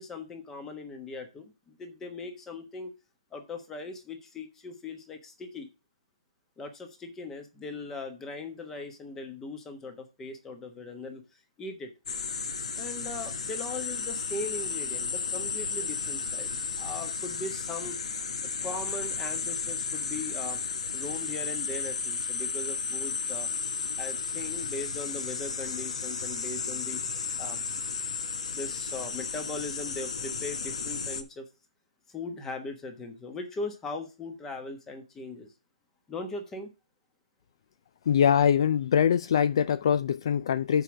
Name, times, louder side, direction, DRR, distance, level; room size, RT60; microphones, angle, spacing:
voice 1, 0.0-2.9 3.3-5.7 6.6-11.2 11.6-11.9 12.8-16.5 16.8-18.0 18.4-20.6 20.9-23.5 24.0-27.0 27.4-27.6 28.5-31.5 32.1-35.5 36.1-36.7, left 3 dB, 10° left, 1.1 m, -39 dB
sound 1, 12.1-31.2, left 5 dB, 70° left, 1.2 m, -33 dB
voice 2, 38.1-40.8, left 8 dB, 50° left, 0.3 m, -23 dB
6.7 x 4.7 x 6.1 m
hypercardioid pair, 160°, 4 cm